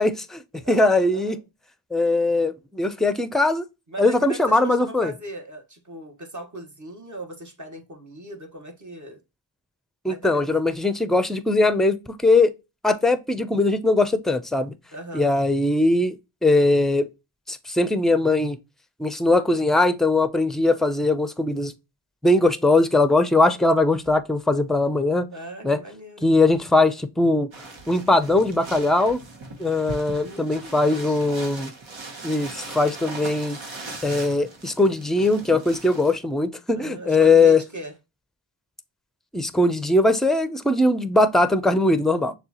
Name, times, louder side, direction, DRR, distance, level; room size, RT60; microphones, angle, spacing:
voice 1, 0.0-1.4 1.9-3.7 4.0-5.1 10.0-12.5 12.8-14.7 15.1-16.2 16.4-17.1 17.5-18.6 19.0-21.7 22.2-25.3 25.6-25.8 26.2-27.5 27.9-29.2 29.6-31.7 32.2-33.6 34.0-37.6 39.3-42.3, left 2 dB, ahead, 0.4 m, -20 dB
voice 2, 0.5-1.4 3.9-9.2 10.1-10.5 14.9-15.3 25.3-26.3 30.1-31.3 36.7-37.9, right 1 dB, 40° right, 1.3 m, -39 dB
sound 1, 27.5-36.2, right 2 dB, 90° right, 1.0 m, -39 dB
6.5 x 2.4 x 2.9 m
wide cardioid pair, 55°, 46 cm